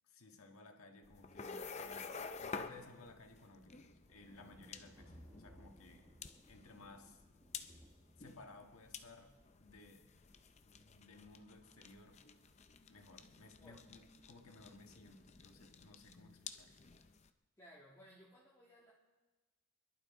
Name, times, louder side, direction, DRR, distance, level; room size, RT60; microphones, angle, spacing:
voice 1, 0.0-6.1 6.5-7.2 8.2-10.1 10.9-12.2 12.9-16.7, left 2 dB, 85° left, 3 dB, 1.6 m, -59 dB
sound 1, 1.0-17.3, left 5 dB, 30° left, 0.5 m, -51 dB
sound 2, 3.9-9.4 10.6-10.9, equal, 10° right, 1.5 m, -62 dB
voice 2, 17.6-18.9, equal, 15° left, -7 dB, 1.7 m, -60 dB
25.5 x 11.5 x 3.7 m, 1.3 s
head